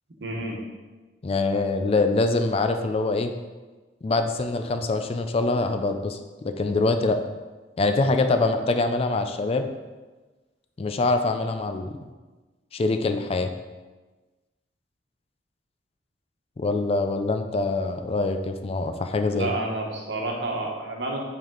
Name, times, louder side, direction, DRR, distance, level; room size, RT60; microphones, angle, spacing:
voice 1, 0.2-0.6 19.3-21.2, right 2 dB, 75° right, 0 dB, 1.2 m, -29 dB
voice 2, 1.2-3.3 4.0-7.2 7.8-9.7 10.8-12.0 12.7-13.5 16.6-19.5, left 3 dB, 35° left, 7 dB, 0.4 m, -24 dB
7.6 x 3.5 x 3.8 m, 1.3 s
head